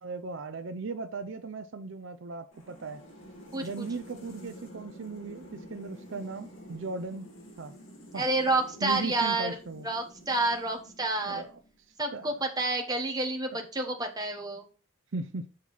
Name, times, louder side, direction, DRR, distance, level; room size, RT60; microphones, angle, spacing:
voice 1, 0.0-3.0 3.6-7.3 7.6-7.7 8.1-8.2 8.8-9.9 11.3-11.5 12.1-12.4 13.5-13.7 15.1-15.5, right 3 dB, 60° right, 0.6 m, -37 dB
sound 1, 2.5-11.8, equal, 65° left, 2.7 m, -49 dB
voice 2, 3.5-3.9 8.1-9.6 9.8-11.4 12.0-14.7, right 2 dB, 20° right, 1.1 m, -29 dB
7.5 x 4.6 x 4.1 m
head